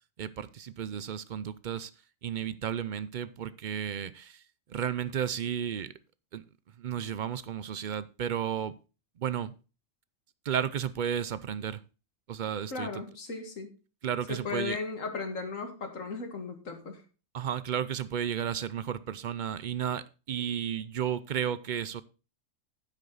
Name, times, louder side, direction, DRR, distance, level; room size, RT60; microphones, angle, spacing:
voice 1, 0.2-1.9 2.2-4.4 4.7-5.9 6.3-6.4 6.8-8.7 9.2-9.5 10.4-11.8 12.3-13.0 14.0-14.8 17.3-22.0, right 9 dB, 55° right, 0.5 m, -33 dB
voice 2, 12.7-13.7 14.3-17.0, left 4 dB, 80° left, 2.2 m, -36 dB
10.5 x 8.2 x 3.9 m
omnidirectional pair, 1.3 m